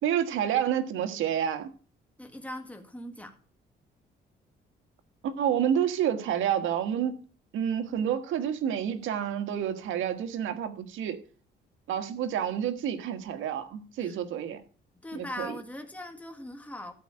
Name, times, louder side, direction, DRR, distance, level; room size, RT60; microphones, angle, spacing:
voice 1, 0.0-1.7 5.2-7.2 7.5-11.2 11.9-14.6 15.1-15.5, right 9 dB, 85° right, 1.6 m, -29 dB
voice 2, 2.2-3.4 14.0-14.2 15.0-16.9, left 1 dB, 5° left, 1.9 m, -40 dB
13.5 x 4.9 x 8.7 m
cardioid pair, 90°, 20 cm